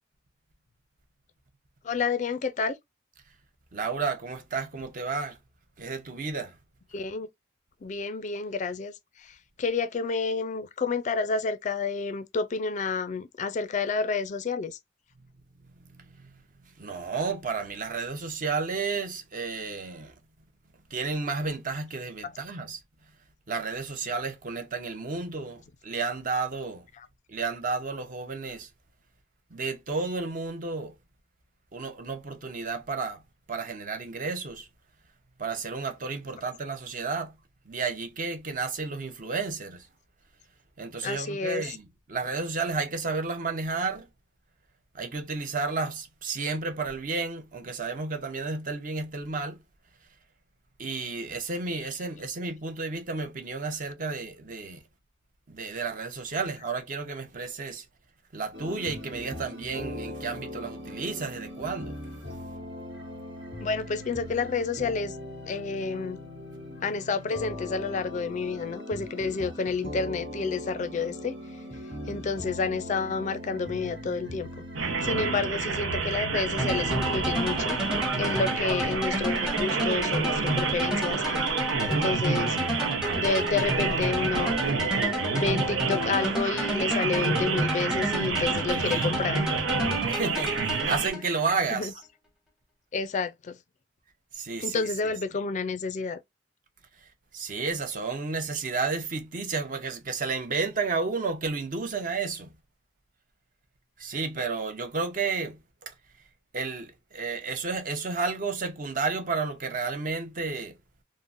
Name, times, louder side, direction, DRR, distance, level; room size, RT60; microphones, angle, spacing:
voice 1, 1.8-2.8 6.9-7.3 7.8-14.8 22.2-22.3 27.0-27.1 41.0-41.7 63.6-65.2 65.5-66.2 66.8-71.3 72.1-74.5 75.0-77.8 78.2-81.4 81.9-82.6 83.1-84.6 85.3-89.4 91.7-91.9 92.9-93.6 94.6-96.2, left 4 dB, 40° left, 0.3 m, -30 dB
voice 2, 3.7-5.4 5.8-6.6 16.0-16.3 16.8-20.1 20.9-22.8 23.5-26.9 27.3-28.7 29.5-31.0 31.7-33.2 33.5-34.7 35.4-37.4 37.7-39.9 40.8-44.1 44.9-49.6 50.8-54.8 55.5-57.8 58.3-61.9 88.8-89.2 90.1-91.9 94.3-94.9 97.3-102.5 104.0-105.9 106.5-110.7, right 4 dB, 45° right, 0.6 m, -32 dB
sound 1, 58.5-74.8, left 1 dB, 70° right, 1.2 m, -40 dB
sound 2, 74.8-91.1, right 4 dB, 85° right, 0.7 m, -29 dB
sound 3, 76.6-91.6, equal, 5° right, 0.7 m, -31 dB
3.6 x 2.1 x 2.4 m
head